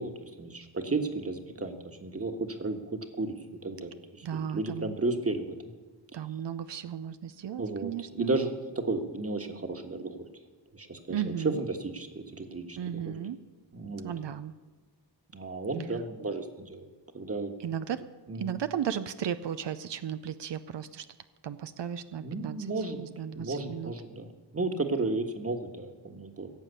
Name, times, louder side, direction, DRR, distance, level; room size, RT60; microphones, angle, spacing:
voice 1, 0.0-5.6 7.6-8.5 8.7-10.1 10.7-13.1 13.7-14.1 15.3-16.9 17.1-17.5 18.3-18.5 22.2-23.0 23.3-26.5, right 3 dB, 35° right, 6 dB, 1.5 m, -33 dB
voice 2, 4.2-5.0 6.1-8.4 11.1-11.6 12.8-13.4 14.0-14.5 17.6-18.1 18.4-21.1 21.4-23.9, right 9 dB, 90° right, 11 dB, 0.6 m, -35 dB
17.0 x 7.5 x 8.2 m, 1.3 s
wide cardioid pair, 90°, 41 cm